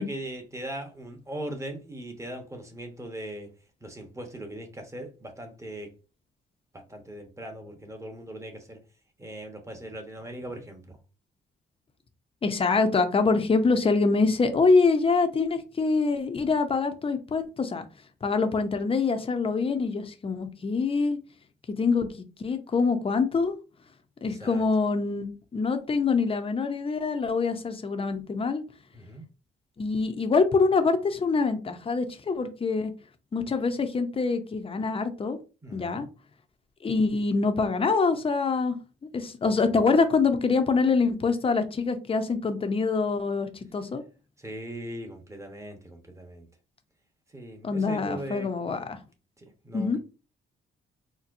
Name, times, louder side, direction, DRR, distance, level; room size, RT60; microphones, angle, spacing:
voice 1, 0.0-3.5 3.8-5.9 6.7-8.8 9.2-11.0 24.2-24.6 28.9-29.2 35.6-36.0 44.4-46.5 47.3-48.5 49.4-50.0, right 1 dB, 15° right, 1.0 m, -39 dB
voice 2, 12.4-17.9 18.2-21.2 21.8-23.5 24.2-28.6 29.8-32.9 33.3-35.4 35.7-36.1 36.8-38.8 39.1-44.0 47.6-49.0 49.7-50.0, left 4 dB, 30° left, 0.6 m, -25 dB
4.1 x 2.2 x 2.6 m
cardioid pair, 90°, 20 cm